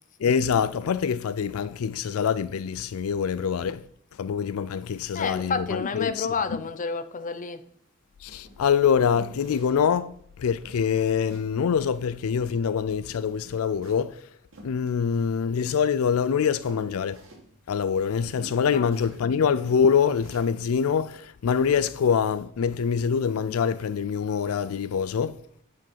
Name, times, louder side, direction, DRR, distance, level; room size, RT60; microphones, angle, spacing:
voice 1, 0.2-3.8 4.2-6.3 8.2-14.1 14.6-17.2 17.7-25.4, left 7 dB, 80° left, 0.4 m, -25 dB
voice 2, 5.1-7.6 18.7-18.9, left 5 dB, 40° left, 0.6 m, -29 dB
sound 1, 7.7-7.9 8.3-8.8 9.1-9.9 10.2-10.3 10.6-11.6 11.8-12.8 13.1-15.6 16.1-19.4 19.7-20.5 21.0-21.1, right 1 dB, 65° right, 2.3 m, -49 dB
9.4 x 5.1 x 5.7 m
head